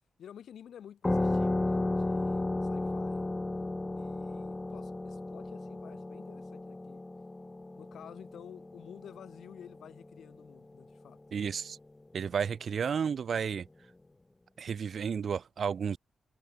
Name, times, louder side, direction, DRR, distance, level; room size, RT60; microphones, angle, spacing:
voice 1, 0.2-3.3 3.9-7.0 7.8-11.2, left 9 dB, 85° left, 1.7 m, -51 dB
sound 1, 1.0-10.2, left 2 dB, 20° left, 0.9 m, -34 dB
voice 2, 11.3-11.8 12.1-13.7 14.6-16.0, right 7 dB, 60° right, 1.1 m, -32 dB
cardioid pair, 90°, 0 cm